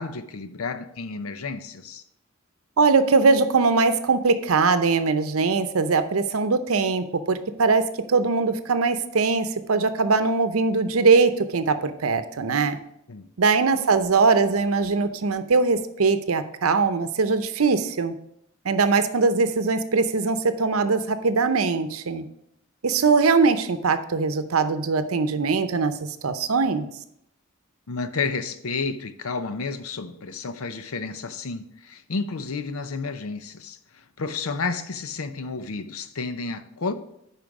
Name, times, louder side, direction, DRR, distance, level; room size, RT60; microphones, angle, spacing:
voice 1, 0.0-2.0 13.1-13.3 27.9-36.9, left 4 dB, 85° left, 0.7 m, -31 dB
voice 2, 2.8-12.8 13.4-18.1 18.6-22.2 22.8-25.9 26.2-26.9, right 4 dB, 85° right, 0.7 m, -21 dB
10.5 x 4.5 x 4.8 m
head